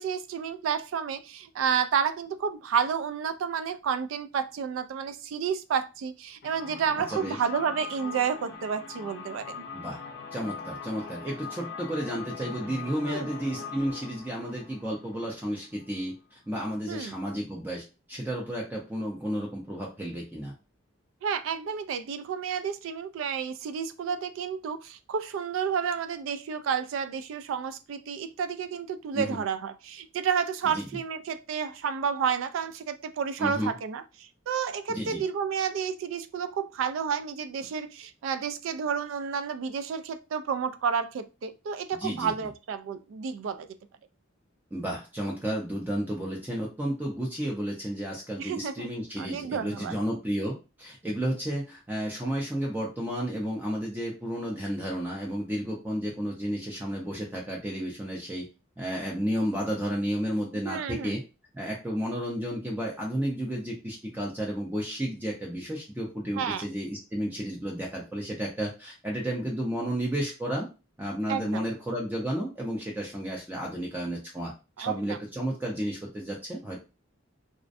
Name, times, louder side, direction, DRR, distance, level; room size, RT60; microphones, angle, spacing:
voice 1, 0.0-9.7 13.1-13.3 16.9-17.1 21.2-34.0 34.5-43.7 48.4-48.9 49.2-49.9 60.5-61.1 66.3-66.6 71.3-71.6 74.8-75.2, right 7 dB, 80° right, 0.3 m, -30 dB
sound 1, 6.4-16.1, left 5 dB, 55° left, 0.5 m, -42 dB
voice 2, 7.1-7.4 9.7-10.0 10.3-20.5 29.1-29.4 30.7-31.0 33.4-33.7 34.9-35.2 41.9-42.5 44.7-58.5 58.8-61.2 61.5-70.7 71.0-74.5 74.8-76.8, equal, 10° right, 0.5 m, -32 dB
2.4 x 2.1 x 2.5 m
head